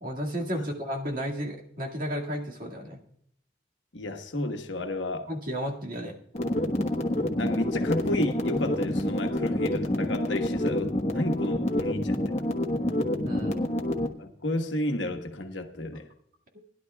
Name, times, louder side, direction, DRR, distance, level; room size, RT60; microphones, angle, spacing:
voice 1, 0.0-3.0 5.3-6.2 13.3-13.6, equal, 50° right, 2.0 m, -33 dB
voice 2, 3.9-5.3 7.4-12.4 14.2-16.1, left 1 dB, 90° left, 1.2 m, -32 dB
sound 1, 6.3-14.1, left 1 dB, 35° left, 1.2 m, -27 dB
20.0 x 11.0 x 2.3 m
head